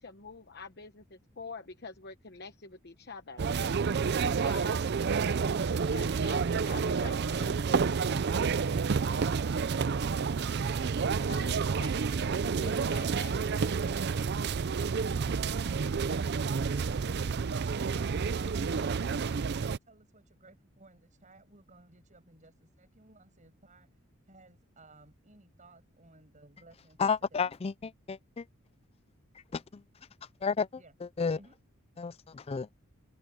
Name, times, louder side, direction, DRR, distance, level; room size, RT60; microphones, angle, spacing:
voice 1, 0.0-3.4 4.4-4.9 5.9-8.0 11.3-13.5, left 4 dB, 50° left, 1.1 m, -46 dB
sound 1, 3.4-19.8, right 5 dB, 50° right, 0.5 m, -29 dB
voice 2, 16.7-24.0 24.3-27.5 30.8-30.9 31.3-31.6, right 2 dB, 35° right, 6.4 m, -59 dB
voice 3, 27.0-27.7 28.1-28.4 29.5-29.6 30.4-30.7 31.2-31.4 32.0-32.7, left 5 dB, 30° left, 0.4 m, -30 dB
open air
head